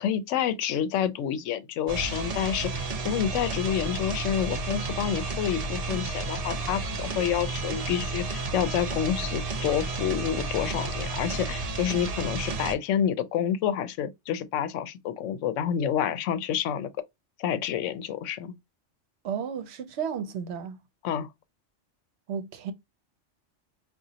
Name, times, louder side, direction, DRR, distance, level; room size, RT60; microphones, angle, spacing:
voice 1, 0.0-16.9 17.4-18.5 21.0-21.3, left 9 dB, 85° left, 0.9 m, -28 dB
sound 1, 1.9-12.8, right 3 dB, 45° right, 0.5 m, -32 dB
voice 2, 19.2-20.8 22.3-22.7, right 7 dB, 70° right, 0.9 m, -33 dB
4.9 x 2.4 x 2.7 m
omnidirectional pair, 1.2 m